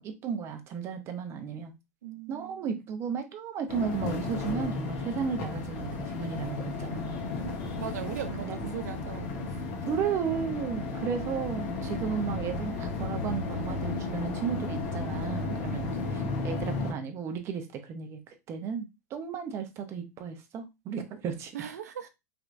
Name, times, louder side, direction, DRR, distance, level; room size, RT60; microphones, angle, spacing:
voice 1, 0.0-1.7 2.3-7.2 8.0-8.1 8.4-8.7 9.9-21.5, right 6 dB, 30° right, 0.7 m, -34 dB
voice 2, 2.0-2.6 7.4-9.6 15.4-16.0 21.5-22.1, right 9 dB, 90° right, 0.6 m, -39 dB
sound 1, 3.7-16.9, left 3 dB, 45° left, 0.9 m, -34 dB
3.3 x 2.9 x 2.5 m
supercardioid pair, 135°, 8 cm